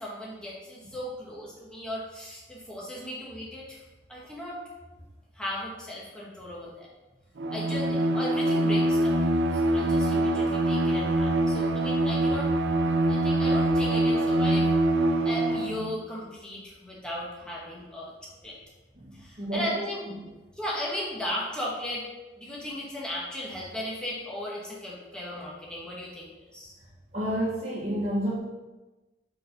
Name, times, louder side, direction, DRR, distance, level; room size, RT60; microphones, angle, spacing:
voice 1, 0.0-3.8 4.1-4.6 5.3-6.9 7.5-9.2 9.5-12.5 13.1-14.7 15.2-18.5 19.1-20.1 20.5-22.0 22.4-26.7, left 1 dB, 5° left, -6 dB, 1.4 m, -36 dB
Bowed string instrument, 7.4-15.9, right 1 dB, 80° right, 0.6 m, -24 dB
voice 2, 19.4-20.2 27.1-28.4, right 1 dB, 35° right, -8 dB, 1.2 m, -30 dB
5.2 x 4.5 x 5.4 m, 1.1 s
head